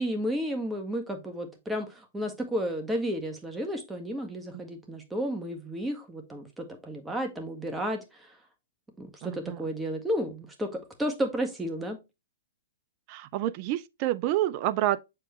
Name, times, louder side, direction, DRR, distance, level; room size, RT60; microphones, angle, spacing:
voice 1, 0.0-8.3 9.0-12.0, equal, 10° right, 1.7 m, -32 dB
voice 2, 9.2-9.6 13.1-15.0, right 14 dB, 45° right, 0.6 m, -28 dB
7.4 x 4.6 x 3.2 m
hypercardioid pair, 120°, 0 cm